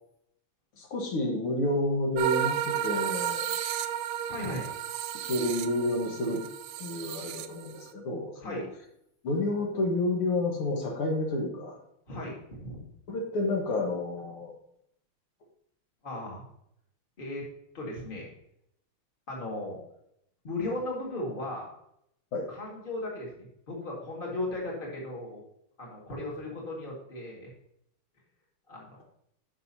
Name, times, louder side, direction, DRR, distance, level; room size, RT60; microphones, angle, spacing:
voice 1, 0.8-3.5 5.2-6.4 6.8-8.6 9.2-11.8 13.1-14.5 22.3-22.5, left 1 dB, 80° left, 1 dB, 2.3 m, -30 dB
sound 1, 2.2-7.9, right 10 dB, 85° right, 1.5 m, -33 dB
voice 2, 4.3-4.7 8.4-8.7 12.1-12.9 16.0-16.4 17.2-17.5 17.7-18.3 19.3-19.8 20.4-21.8 22.5-23.3 23.7-25.4 25.8-27.5 28.7-29.0, left 2 dB, 25° left, -2 dB, 2.0 m, -36 dB
9.9 x 6.3 x 2.8 m, 0.75 s
omnidirectional pair, 2.4 m